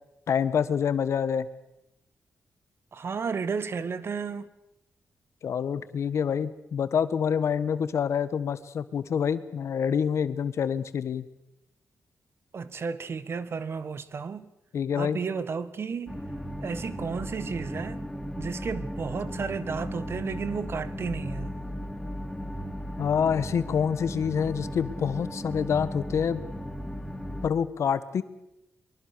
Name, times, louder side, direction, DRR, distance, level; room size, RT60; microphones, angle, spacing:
voice 1, 0.3-1.5 5.4-11.2 14.7-15.2 23.0-26.4 27.4-28.2, left 7 dB, 70° left, 1.4 m, -27 dB
voice 2, 2.9-4.5 12.5-14.5 15.0-16.2 16.6-18.0 18.4-21.5, right 5 dB, 55° right, 1.5 m, -33 dB
sound 1, 16.1-27.5, equal, 10° left, 2.5 m, -36 dB
23.5 x 23.0 x 6.8 m
cardioid pair, 75°, 5 cm